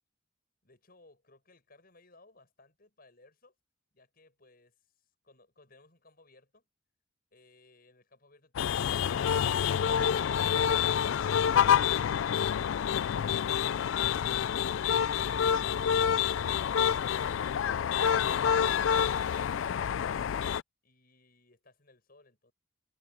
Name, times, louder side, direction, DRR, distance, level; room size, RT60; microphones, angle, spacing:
voice 1, 0.6-3.5 3.9-6.6 7.3-11.5 20.8-22.5, left 2 dB, 50° left, 7.9 m, -61 dB
sound 1, 8.5-20.6, left 8 dB, 80° left, 0.4 m, -27 dB
head